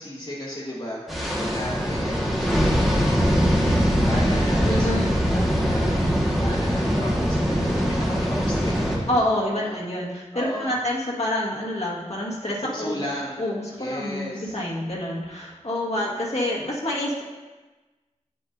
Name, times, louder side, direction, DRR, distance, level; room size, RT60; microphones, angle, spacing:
voice 1, 0.0-9.2 9.6-9.8 10.3-10.7 12.6-13.4 13.8-14.5 15.9-16.0, equal, 40° left, -9 dB, 1.5 m, -35 dB
sound 1, 1.1-9.0, equal, ahead, 1.5 m, -22 dB
voice 2, 4.6-5.1 9.1-13.0 13.4-17.2, left 1 dB, 60° left, -5 dB, 1.6 m, -27 dB
8.2 x 7.9 x 2.6 m, 1.2 s
wide cardioid pair, 55°, 12 cm